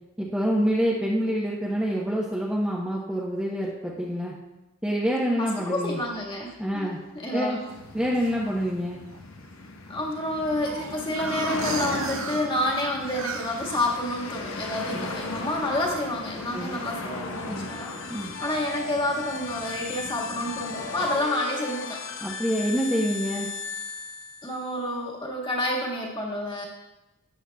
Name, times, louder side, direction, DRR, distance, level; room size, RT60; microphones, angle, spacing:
voice 1, 0.2-4.3 4.8-6.0 6.6-7.0 7.3-7.6 7.9-9.0 14.9-15.1 16.5-16.8 17.5-17.7 18.1-18.3 22.2-23.5, equal, 5° right, -6 dB, 0.9 m, -26 dB
voice 2, 5.4-7.7 9.9-18.0 18.4-22.0 24.4-26.6, left 1 dB, 20° left, -2 dB, 1.7 m, -29 dB
sound 1, 7.0-7.8 8.3-8.7 9.1-9.2 9.4-9.5 9.9-14.7 15.0-15.4 15.8-16.1 16.4-17.4 17.8-18.3, right 5 dB, 70° right, 0.9 m, -38 dB
sound 2, 7.7-21.2, left 2 dB, 75° left, 1.0 m, -37 dB
sound 3, 17.1-24.8, left 4 dB, 55° left, 0.8 m, -37 dB
13.5 x 10.0 x 2.3 m, 1.0 s
head